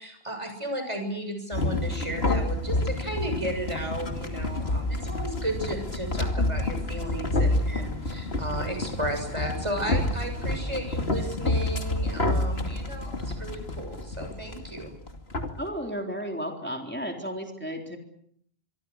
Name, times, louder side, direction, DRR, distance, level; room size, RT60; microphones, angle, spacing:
voice 1, 0.0-14.9, right 1 dB, 30° right, 5 dB, 7.1 m, -34 dB
sound 1, 1.5-15.6, left 2 dB, 80° left, 2.8 m, -29 dB
voice 2, 15.6-18.0, equal, 10° left, 2 dB, 3.9 m, -33 dB
26.0 x 23.5 x 6.6 m, 0.66 s
omnidirectional pair, 1.0 m